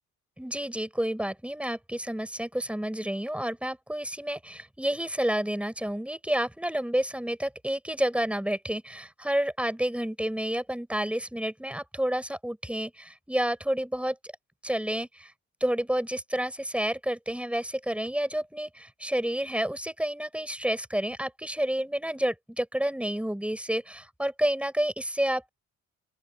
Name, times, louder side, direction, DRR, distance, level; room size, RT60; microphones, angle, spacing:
voice 1, 0.4-14.3 14.6-15.3 15.6-25.5, right 1 dB, 5° right, 6.5 m, -30 dB
open air
cardioid pair, 90°, 30 cm